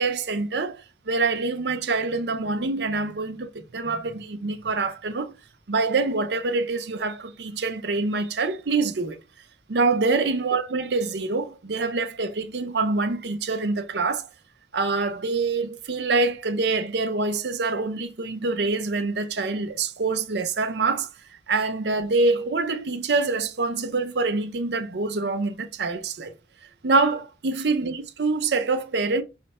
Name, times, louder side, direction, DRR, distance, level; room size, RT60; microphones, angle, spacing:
voice 1, 0.0-5.3 5.7-9.2 9.7-14.3 14.7-21.1 21.5-26.3 26.8-29.2, right 3 dB, 60° right, 0.6 m, -25 dB
5.6 x 2.2 x 4.1 m
head